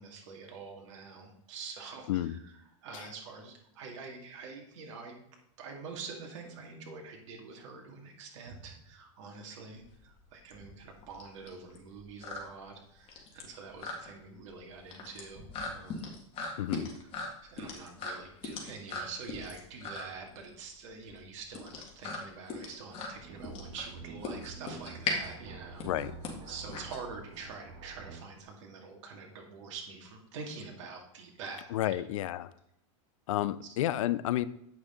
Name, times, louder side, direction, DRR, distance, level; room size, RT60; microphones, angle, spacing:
voice 1, 0.0-5.2 5.6-16.1 17.4-26.1 26.5-32.0 33.7-33.8, right 4 dB, 65° right, 1 dB, 2.2 m, -46 dB
sound 1, 9.8-27.5, left 3 dB, 35° left, 1.9 m, -40 dB
sound 2, 23.1-28.4, right 5 dB, 30° right, 1.0 m, -48 dB
voice 2, 31.7-32.5 33.3-34.5, left 13 dB, 75° left, 15 dB, 0.5 m, -30 dB
8.3 x 6.2 x 3.8 m, 0.74 s
supercardioid pair, 135°, 17 cm